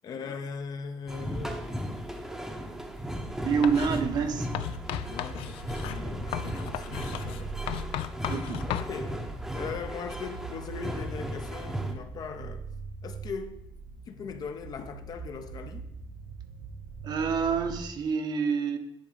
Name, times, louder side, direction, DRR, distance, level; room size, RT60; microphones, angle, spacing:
voice 1, 0.0-2.1 5.1-7.8 8.7-9.2 9.5-12.7 13.0-13.6 14.1-15.9, left 5 dB, 45° left, 0.7 m, -39 dB
sound 1, 1.1-11.9, equal, 5° right, 0.8 m, -36 dB
sound 2, 2.3-17.8, right 5 dB, 90° right, 1.7 m, -42 dB
voice 2, 3.4-4.5 7.8-7.9 8.3-8.7 17.0-18.8, right 6 dB, 50° right, 0.9 m, -27 dB
Writing, 3.6-4.0 4.5-8.9, left 12 dB, 75° left, 0.4 m, -35 dB
10.5 x 3.7 x 5.1 m
cardioid pair, 130°, 9 cm